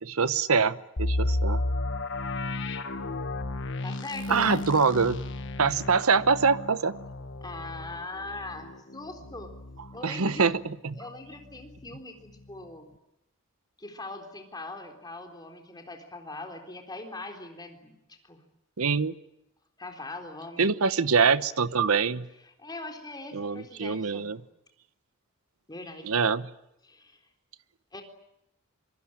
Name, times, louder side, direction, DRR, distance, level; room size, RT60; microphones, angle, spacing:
voice 1, 0.0-1.6 4.3-5.2 5.6-6.9 10.0-10.9 18.8-19.1 20.6-22.3 23.3-24.4 26.0-26.5, right 5 dB, 80° right, 14 dB, 1.0 m, -24 dB
sound 1, 1.0-10.7 11.0-11.1 11.6-11.9, left 2 dB, 60° left, 1.4 m, -33 dB
voice 2, 3.8-4.6 7.4-9.5 9.9-10.5 10.9-12.9 13.8-18.4 19.8-20.8 22.6-24.4 25.7-26.1 26.8-27.2 27.9-28.0, left 2 dB, 20° left, 4 dB, 3.9 m, -41 dB
25.5 x 24.0 x 8.9 m, 0.83 s
head